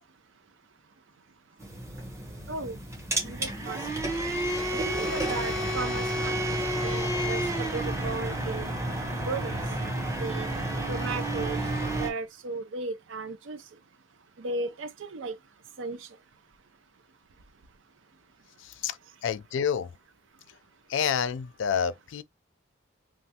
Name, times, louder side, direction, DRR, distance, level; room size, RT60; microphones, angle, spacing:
sound 1, 1.6-12.1, right 1 dB, 15° right, 0.9 m, -30 dB
voice 1, 2.5-2.8 3.2-3.8 4.7-6.3 6.8-8.7 9.3-9.6 10.2-10.5 10.9-13.6 14.4-15.3 15.8-16.1, right 3 dB, 75° right, 0.6 m, -35 dB
voice 2, 18.6-19.0 19.2-19.9 20.9-22.2, left 7 dB, 70° left, 0.4 m, -28 dB
3.3 x 2.3 x 2.8 m
head